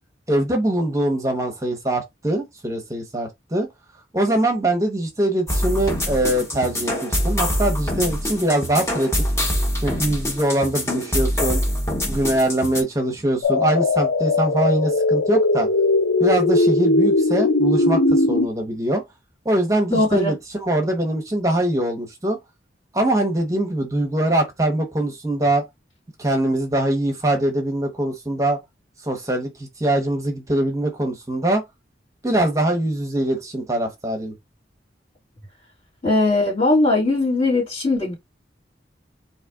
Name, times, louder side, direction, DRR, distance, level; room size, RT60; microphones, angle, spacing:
voice 1, 0.3-3.7 4.1-9.1 9.8-11.6 12.1-15.7 16.2-19.0 19.4-22.4 22.9-25.6 26.2-28.6 29.0-31.6 32.2-34.3, right 1 dB, 15° right, 0.9 m, -22 dB
sound 1, 5.5-12.8, equal, 15° left, 1.0 m, -24 dB
sound 2, 13.4-18.5, left 2 dB, 80° left, 0.9 m, -19 dB
voice 2, 19.9-20.3 36.0-38.1, left 2 dB, 40° left, 3.1 m, -19 dB
4.1 x 2.9 x 3.6 m
head